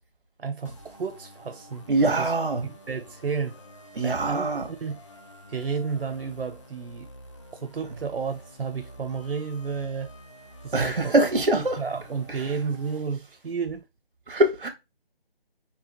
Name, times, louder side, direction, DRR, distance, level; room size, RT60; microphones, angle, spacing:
voice 1, 0.4-2.3 2.6-3.6 4.0-5.0 5.5-7.1 7.6-10.1 10.6-11.1 11.8-13.9, right 5 dB, 90° right, 0.7 m, -32 dB
sound 1, 0.7-13.0, equal, 30° left, 0.8 m, -48 dB
voice 2, 1.9-2.7 3.9-4.7 7.9-8.0 10.7-11.8 12.3-12.6 14.3-14.7, right 2 dB, 60° right, 1.4 m, -23 dB
4.9 x 2.9 x 3.7 m
figure-of-eight pair, 170°, 30 cm